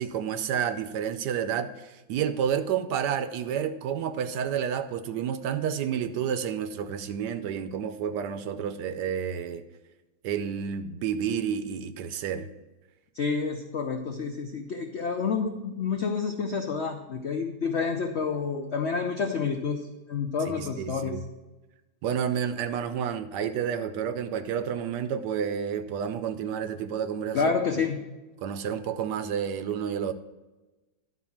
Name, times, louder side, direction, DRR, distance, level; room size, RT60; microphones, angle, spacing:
voice 1, 0.0-9.6 10.2-12.5 20.4-21.2 22.0-27.5 28.4-30.1, right 8 dB, 70° right, 1.1 m, -30 dB
voice 2, 13.1-21.2 27.3-28.0, left 5 dB, 80° left, 0.6 m, -29 dB
11.5 x 4.1 x 7.1 m
omnidirectional pair, 2.0 m